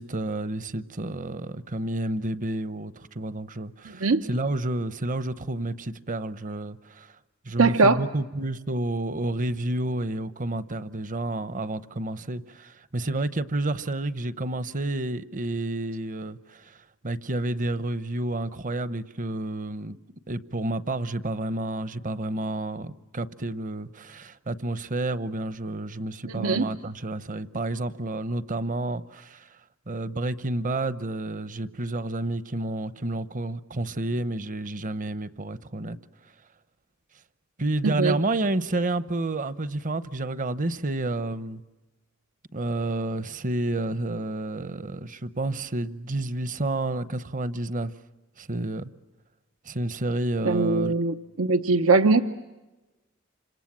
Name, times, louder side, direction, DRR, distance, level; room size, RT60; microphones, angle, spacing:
voice 1, 0.0-7.1 7.4-20.0 20.3-29.5 29.9-36.0 37.6-41.6 42.5-47.9 48.4-48.9 49.6-50.9, right 2 dB, 40° right, 0.9 m, -30 dB
voice 2, 7.6-8.0 26.2-26.7 37.8-38.1 50.4-52.2, right 3 dB, 85° right, 0.8 m, -21 dB
28.0 x 26.0 x 7.4 m
head